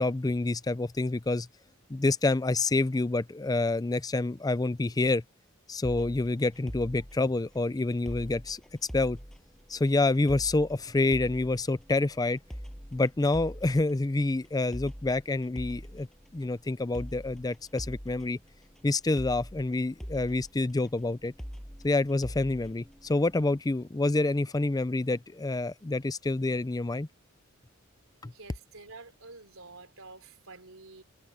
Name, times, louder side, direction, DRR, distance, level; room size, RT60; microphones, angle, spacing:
voice 1, 0.0-1.5 1.9-5.2 5.7-8.6 8.9-9.2 9.7-12.4 12.9-16.1 16.3-18.4 18.8-21.3 21.8-27.1 28.2-28.3, left 2 dB, 20° left, 0.5 m, -27 dB
sound 1, 5.8-23.6, equal, ahead, 7.3 m, -44 dB
voice 2, 28.2-31.0, right 3 dB, 90° right, 3.4 m, -49 dB
head